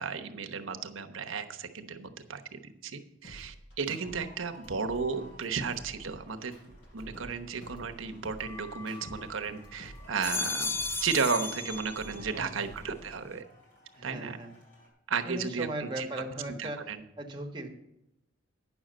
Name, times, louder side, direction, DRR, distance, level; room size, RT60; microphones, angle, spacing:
voice 1, 0.0-6.5 6.9-10.7 11.0-13.4 14.0-14.4 15.1-16.1 16.6-17.0, right 5 dB, 85° right, 6 dB, 1.0 m, -34 dB
sound 1, 3.2-4.2 4.5-7.4 7.6-9.2 9.5-12.3 12.6-13.2, equal, 65° left, 5.2 m, -50 dB
sound 2, 4.0-14.9, equal, 40° left, 4.1 m, -56 dB
sound 3, 8.4-9.6 10.0-12.4 12.8-13.4, left 4 dB, 15° left, 0.4 m, -36 dB
voice 2, 12.2-12.7 13.9-14.5 15.2-16.9 17.2-17.7, right 1 dB, 20° right, 2 dB, 1.3 m, -38 dB
9.7 x 6.4 x 7.4 m, 0.85 s
head